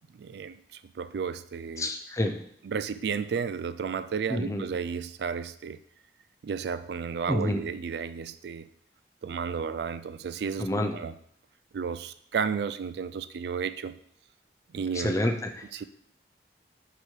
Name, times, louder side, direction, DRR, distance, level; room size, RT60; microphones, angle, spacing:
voice 1, 0.1-1.9 2.6-5.8 6.4-8.7 9.2-11.2 11.7-14.0 14.7-15.2 15.7-15.8, right 6 dB, 65° right, 13 dB, 0.3 m, -33 dB
voice 2, 1.8-2.3 4.3-4.7 7.3-7.6 10.6-10.9 14.9-15.5, left 1 dB, 15° left, 4 dB, 0.6 m, -28 dB
5.0 x 4.6 x 4.5 m, 0.66 s
head